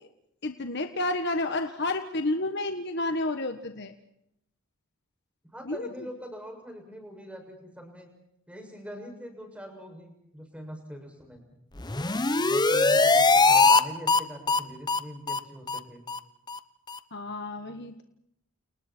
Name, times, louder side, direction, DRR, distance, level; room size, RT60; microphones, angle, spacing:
voice 1, 0.4-3.9 5.7-5.9 17.1-18.0, left 2 dB, 55° left, 6 dB, 1.6 m, -30 dB
voice 2, 5.4-8.1 8.5-11.4 12.4-16.0, equal, 5° right, 3 dB, 6.9 m, -43 dB
sound 1, 11.8-13.8 14.1-14.2 14.5-14.6 14.9-15.0 15.3-15.4 15.7-15.8 16.1-16.2 16.5-16.6 16.9-17.0, left 3 dB, 20° left, 1.0 m, -21 dB
30.0 x 29.5 x 4.6 m, 0.78 s
head